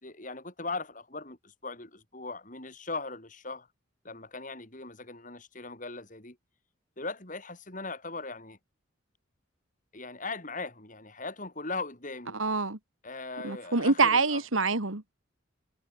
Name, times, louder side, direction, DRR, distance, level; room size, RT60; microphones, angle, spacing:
voice 1, 0.0-3.7 4.0-6.4 7.0-8.6 9.9-12.4 13.0-14.4, left 3 dB, 40° left, 4.2 m, -39 dB
voice 2, 12.3-12.8 13.4-15.0, right 4 dB, 80° right, 2.1 m, -25 dB
head